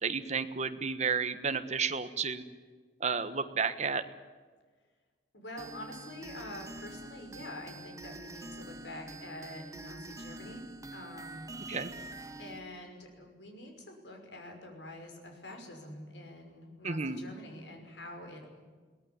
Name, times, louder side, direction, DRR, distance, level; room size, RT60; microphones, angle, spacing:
voice 1, 0.0-2.4 3.0-4.0 11.7-11.9 16.8-17.2, right 5 dB, 40° right, 10 dB, 1.4 m, -32 dB
voice 2, 5.3-10.6 10.9-11.5 12.4-18.5, left 1 dB, 85° left, 4 dB, 5.8 m, -46 dB
sound 1, 5.6-12.6, right 2 dB, 20° right, 1.7 m, -46 dB
22.5 x 18.0 x 9.8 m, 1.5 s
head